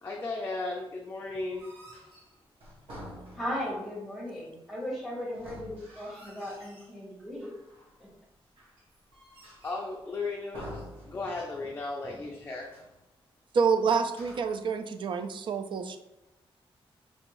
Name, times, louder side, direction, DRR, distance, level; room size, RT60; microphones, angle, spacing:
voice 1, 0.0-1.7 9.6-12.7, left 3 dB, 25° left, -1 dB, 0.4 m, -35 dB
sound 1, 1.5-3.8 5.3-7.0 7.4-8.0 8.6-10.0 10.5-11.6 11.9-12.0 12.5-13.0 14.0-14.7, equal, 80° right, 1.3 m, -48 dB
voice 2, 3.4-7.5 8.0-8.1, equal, ahead, -4 dB, 1.2 m, -37 dB
voice 3, 13.5-16.0, right 5 dB, 60° right, 8 dB, 0.4 m, -27 dB
3.5 x 3.1 x 3.0 m, 0.99 s
wide cardioid pair, 145°, 10 cm